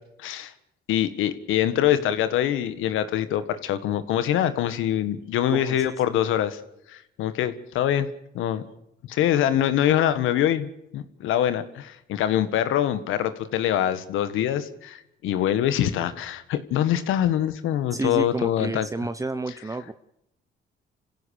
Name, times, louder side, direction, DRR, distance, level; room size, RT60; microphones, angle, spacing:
voice 1, 0.2-0.5 0.9-6.6 6.9-8.1 8.3-8.6 9.1-18.9, left 11 dB, 90° left, 13 dB, 1.7 m, -24 dB
voice 2, 5.5-6.1 17.9-19.9, right 3 dB, 15° right, 11 dB, 0.9 m, -31 dB
26.5 x 16.0 x 6.6 m, 0.81 s
cardioid pair, 90°, 20 cm